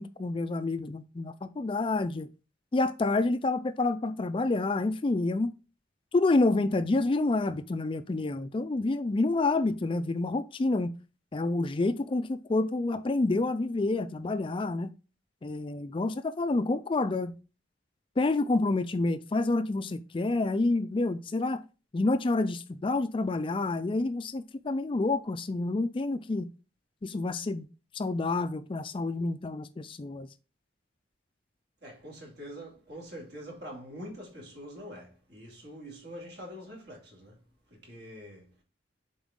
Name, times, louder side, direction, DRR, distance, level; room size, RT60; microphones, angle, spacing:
voice 1, 0.0-2.3 2.7-5.5 6.1-11.0 11.3-14.9 15.4-17.3 18.2-21.6 21.9-26.5 27.0-27.7 27.9-30.3, left 2 dB, 30° left, 0.4 m, -28 dB
voice 2, 31.8-37.4 37.7-38.5, equal, 60° right, 2.7 m, -44 dB
7.1 x 4.3 x 3.7 m
head